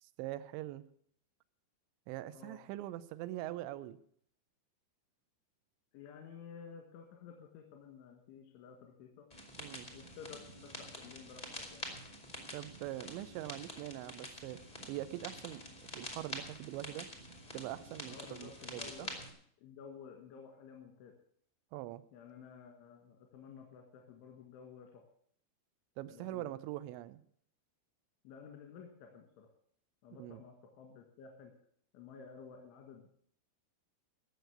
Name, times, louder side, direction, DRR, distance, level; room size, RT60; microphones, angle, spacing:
voice 1, 0.0-0.8 2.1-4.0 9.6-9.9 12.5-14.6 14.9-15.6 15.9-17.1 17.5-19.1 21.7-22.0 26.0-27.2 30.2-30.4, right 15 dB, 80° right, 14 dB, 2.8 m, -43 dB
voice 2, 5.9-9.3 9.9-11.9 14.1-14.2 18.1-19.3 19.6-21.1 22.1-25.0 26.1-26.5 28.3-29.5 30.0-31.5 31.9-33.1, left 6 dB, 90° left, 1 dB, 4.1 m, -53 dB
sound 1, 9.3-19.3, left 1 dB, 25° left, 0.9 m, -47 dB
16.5 x 6.5 x 8.0 m, 0.62 s
omnidirectional pair, 5.3 m